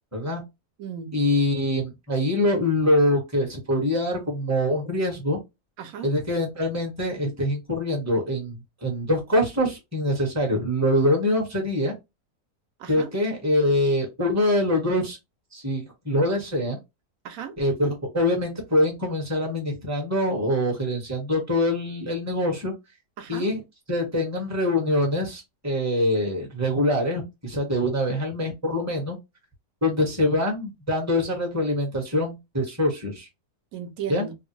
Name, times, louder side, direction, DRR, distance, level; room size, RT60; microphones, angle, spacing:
voice 1, 0.1-0.4 1.1-5.4 6.0-11.9 12.9-15.2 15.5-16.8 17.6-22.7 23.3-23.6 23.9-29.2 29.8-33.3 34.1-34.3, left 1 dB, 10° right, 0.9 m, -24 dB
voice 2, 0.8-1.1 5.8-6.1 12.8-13.1 17.2-17.6 23.2-23.5 33.7-34.4, right 8 dB, 70° right, 0.9 m, -35 dB
3.4 x 2.3 x 2.9 m
omnidirectional pair, 1.9 m